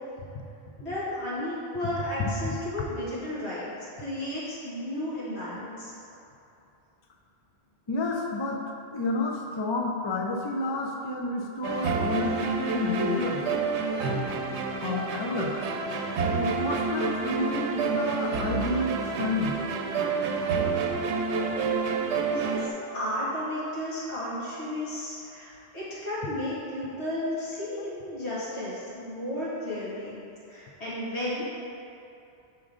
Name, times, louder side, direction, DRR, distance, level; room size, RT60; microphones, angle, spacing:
voice 1, 0.8-3.7 4.0-5.9 22.3-30.2 30.5-31.4, left 1 dB, 75° left, -10 dB, 2.0 m, -33 dB
voice 2, 7.9-8.6 8.9-13.4 14.7-15.5 16.3-19.6, left 2 dB, 45° left, 1 dB, 0.3 m, -30 dB
sound 1, 11.6-22.7, right 4 dB, 85° right, 0.9 m, -28 dB
6.2 x 4.6 x 3.6 m, 2.7 s
omnidirectional pair, 1.1 m